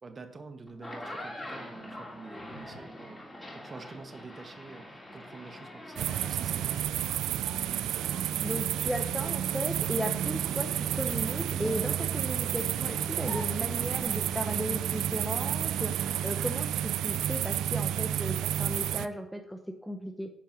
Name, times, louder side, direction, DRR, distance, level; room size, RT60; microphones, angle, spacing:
voice 1, 0.0-3.2 3.5-6.9 17.5-17.7, right 3 dB, 35° right, 7 dB, 1.5 m, -47 dB
sound 1, 0.7-14.0, left 1 dB, 15° left, 3.3 m, -45 dB
sound 2, 6.0-19.1, right 11 dB, 85° right, 0.4 m, -31 dB
voice 2, 8.4-20.3, equal, ahead, 5 dB, 0.8 m, -36 dB
sound 3, 9.8-14.3, right 1 dB, 15° right, 1.1 m, -50 dB
10.5 x 4.6 x 6.0 m, 0.77 s
cardioid pair, 90°, 0 cm